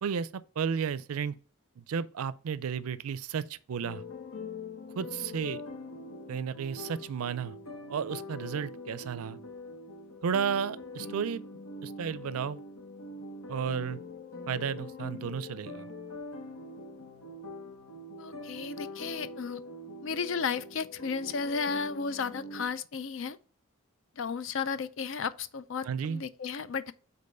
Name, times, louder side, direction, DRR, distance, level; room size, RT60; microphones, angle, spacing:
voice 1, 0.0-1.4 1.8-4.0 4.9-5.6 6.3-7.5 7.9-9.4 10.2-11.4 11.8-12.6 13.5-14.0 14.5-15.9 25.8-26.2, right 7 dB, 85° right, 0.4 m, -33 dB
sound 1, 3.8-22.6, left 2 dB, 80° left, 0.9 m, -43 dB
voice 2, 18.2-19.6 20.0-23.4 24.2-26.9, left 5 dB, 60° left, 0.4 m, -34 dB
5.3 x 4.1 x 5.2 m
head